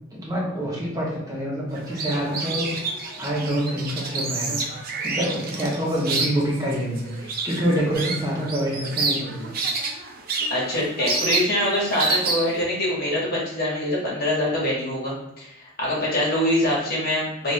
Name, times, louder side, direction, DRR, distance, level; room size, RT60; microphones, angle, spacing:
voice 1, 0.1-2.7 3.2-4.6 5.0-9.6, equal, 20° right, -5 dB, 1.1 m, -26 dB
sound 1, 1.7-12.6, right 3 dB, 50° right, 0.5 m, -29 dB
voice 2, 10.5-17.5, left 1 dB, 50° left, -6 dB, 1.5 m, -24 dB
3.4 x 2.6 x 3.3 m, 0.88 s
head